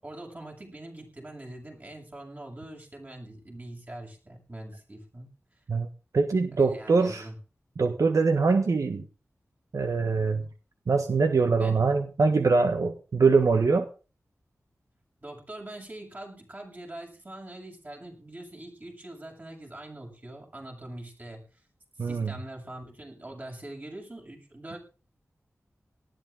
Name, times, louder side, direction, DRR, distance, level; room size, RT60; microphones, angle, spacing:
voice 1, 0.0-5.3 6.5-7.4 11.6-11.8 15.2-21.6 22.0-24.8, right 1 dB, 35° right, 1 dB, 7.3 m, -43 dB
voice 2, 6.1-7.3 7.8-9.1 9.7-10.4 10.9-13.9 22.0-22.3, right 4 dB, 80° right, 6 dB, 1.5 m, -23 dB
19.0 x 13.5 x 3.8 m, 0.35 s
wide cardioid pair, 80°, 6 cm